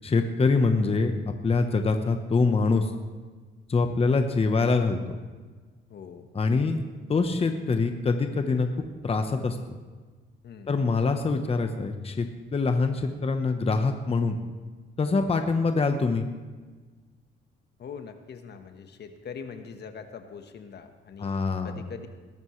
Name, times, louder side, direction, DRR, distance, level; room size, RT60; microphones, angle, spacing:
voice 1, 0.0-1.1 1.4-2.9 3.7-5.0 6.3-6.8 7.1-8.7 9.0-9.6 10.7-12.3 12.5-14.4 15.0-16.3 21.2-21.8, left 4 dB, 30° left, 6 dB, 1.0 m, -24 dB
voice 2, 5.9-6.3 10.4-10.8 17.8-22.1, left 6 dB, 55° left, 6 dB, 1.3 m, -42 dB
21.0 x 12.5 x 3.2 m, 1.4 s
cardioid pair, 90°, 20 cm